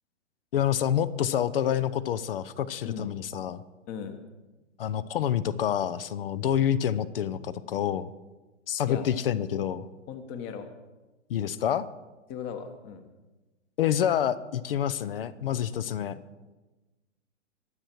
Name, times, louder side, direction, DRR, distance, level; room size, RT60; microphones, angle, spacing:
voice 1, 0.5-3.6 4.8-8.1 8.7-9.9 11.3-11.9 13.8-16.2, left 10 dB, 50° left, 16 dB, 0.7 m, -27 dB
voice 2, 3.9-4.2 8.9-9.1 10.1-10.7 12.3-13.0, left 7 dB, 30° left, 8 dB, 1.3 m, -37 dB
22.5 x 7.7 x 4.6 m, 1.1 s
figure-of-eight pair, 120°, 38 cm